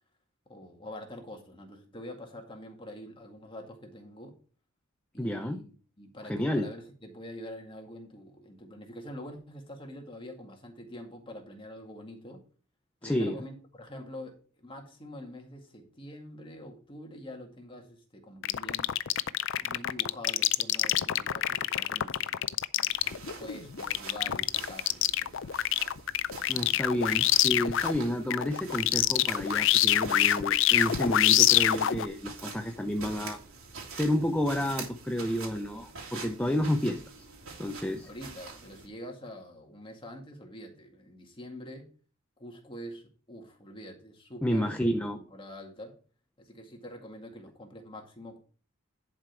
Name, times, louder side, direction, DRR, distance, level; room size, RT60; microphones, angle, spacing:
voice 1, 0.5-4.4 5.1-12.4 13.0-18.9 19.6-22.9 23.1-25.5 38.0-41.9 42.4-44.7 45.1-45.9 46.4-48.4, left 1 dB, 25° left, 2 dB, 2.0 m, -45 dB
voice 2, 5.2-5.6 6.2-6.7 13.0-13.4 26.5-33.4 33.9-37.3 37.6-38.1 44.4-45.2, equal, 5° left, 5 dB, 0.6 m, -30 dB
sound 1, 18.4-28.0 28.3-32.1, left 12 dB, 60° left, 0.4 m, -25 dB
sound 2, 22.9-38.9, right 4 dB, 75° right, 3.1 m, -45 dB
11.0 x 5.2 x 4.6 m, 0.38 s
head